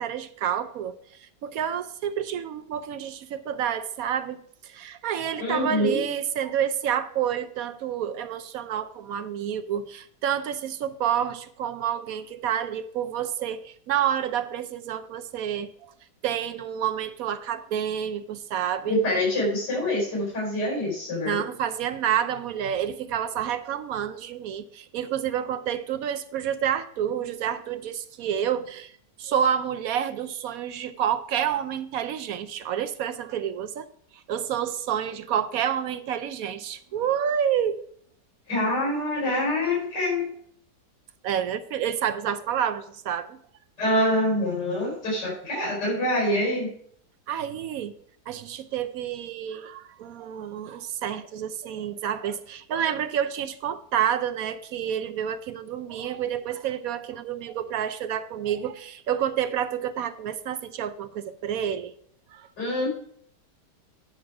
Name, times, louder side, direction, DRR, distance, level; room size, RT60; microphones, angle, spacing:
voice 1, 0.0-15.9 16.2-18.9 21.3-28.9 29.2-33.9 34.3-37.8 41.2-43.4 47.3-47.9 48.3-61.9 62.3-62.5, right 9 dB, 70° right, 12 dB, 0.9 m, -29 dB
voice 2, 5.4-6.0 18.9-21.4 38.5-40.3 43.8-46.7 62.6-62.9, left 1 dB, 90° left, -3 dB, 5.3 m, -25 dB
9.4 x 6.3 x 4.7 m, 0.62 s
omnidirectional pair, 1.8 m